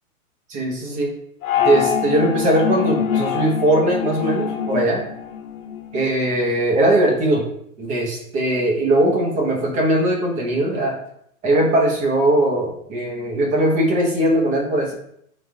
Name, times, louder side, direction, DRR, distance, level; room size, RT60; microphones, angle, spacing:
voice 1, 0.5-1.1 1.6-5.0 5.9-7.4 7.8-11.0 11.4-14.9, right 1 dB, 20° right, -1 dB, 0.7 m, -20 dB
sound 1, 1.4-6.0, left 8 dB, 75° left, 0.8 m, -24 dB
3.6 x 2.4 x 4.4 m, 0.70 s
hypercardioid pair, 140°, 43 cm